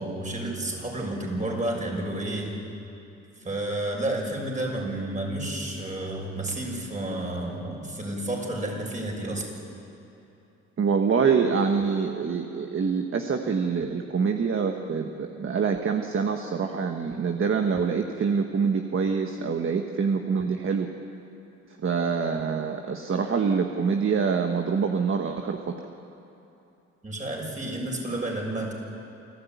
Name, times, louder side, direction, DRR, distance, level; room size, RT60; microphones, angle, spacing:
voice 1, 0.0-2.5 3.4-9.5 27.0-28.7, right 1 dB, 25° right, 0 dB, 6.6 m, -31 dB
voice 2, 10.8-20.9 21.8-25.9, right 5 dB, 45° right, 4 dB, 1.5 m, -25 dB
28.5 x 13.5 x 9.4 m, 2.9 s
cardioid pair, 90°, 30 cm